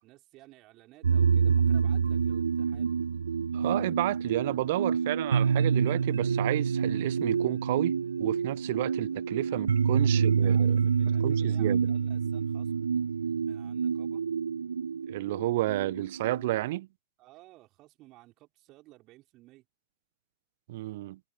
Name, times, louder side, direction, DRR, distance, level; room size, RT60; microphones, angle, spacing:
voice 1, 0.0-3.0 9.5-9.7 10.1-12.7 13.4-14.2 17.2-19.7, right 18 dB, 40° right, 5.7 m, -55 dB
sound 1, 1.0-16.6, right 6 dB, 70° right, 0.8 m, -27 dB
voice 2, 3.5-10.8 11.2-11.8 15.1-16.9 20.7-21.2, right 17 dB, 55° right, 1.4 m, -31 dB
figure-of-eight pair, 90°, 0 cm